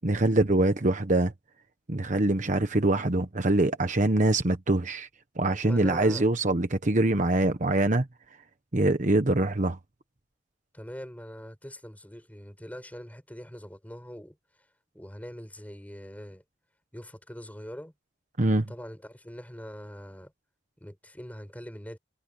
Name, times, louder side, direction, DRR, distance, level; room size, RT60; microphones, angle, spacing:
voice 1, 0.0-1.3 1.9-5.1 5.4-8.1 8.7-9.8 18.4-18.7, right 2 dB, 45° right, 1.1 m, -24 dB
voice 2, 5.6-6.2 10.7-14.4 14.9-16.4 16.9-17.9 18.7-20.3 20.8-22.0, equal, 10° left, 7.9 m, -42 dB
head